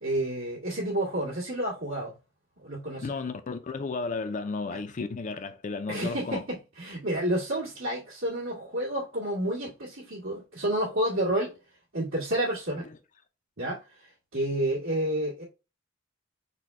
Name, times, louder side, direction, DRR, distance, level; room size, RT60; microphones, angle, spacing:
voice 1, 0.0-2.1 2.6-3.1 4.7-4.8 5.9-11.6 11.9-12.9 13.6-15.4, right 1 dB, 80° right, 2.0 m, -30 dB
voice 2, 3.0-6.4, left 4 dB, 40° left, 0.4 m, -33 dB
4.2 x 2.2 x 4.6 m
head